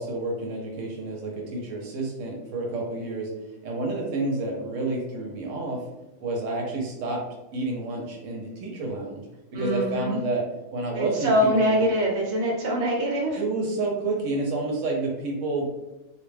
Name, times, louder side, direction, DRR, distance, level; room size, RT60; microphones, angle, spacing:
voice 1, 0.0-3.3 3.6-5.9 6.2-7.2 7.5-9.3 9.5-10.4 10.7-11.9 13.4-15.7, right 2 dB, 90° right, 0 dB, 1.0 m, -29 dB
voice 2, 9.5-10.2 10.9-13.4, equal, 65° right, -1 dB, 1.0 m, -24 dB
2.3 x 2.1 x 3.1 m, 0.96 s
omnidirectional pair, 1.3 m